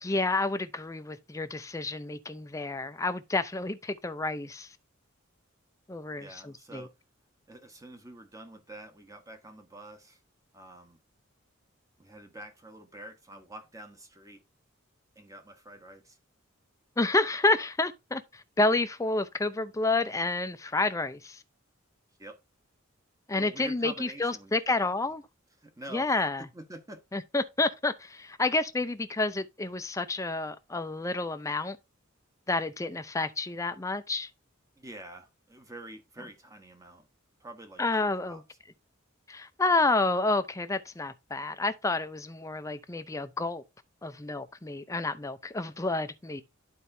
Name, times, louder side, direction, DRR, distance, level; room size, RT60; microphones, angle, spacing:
voice 1, 0.0-4.7 5.9-6.9 17.0-21.4 23.3-25.2 25.9-26.5 27.1-31.8 32.5-34.3 37.8-38.4 39.3-43.6 44.0-46.4, left 2 dB, 15° left, 0.5 m, -29 dB
voice 2, 6.2-6.9 7.5-10.2 10.5-11.0 12.0-14.4 15.1-16.2 22.2-22.4 23.3-24.9 25.6-27.0 34.8-37.0 37.4-38.4, right 1 dB, 15° right, 1.1 m, -47 dB
11.0 x 4.5 x 2.7 m
head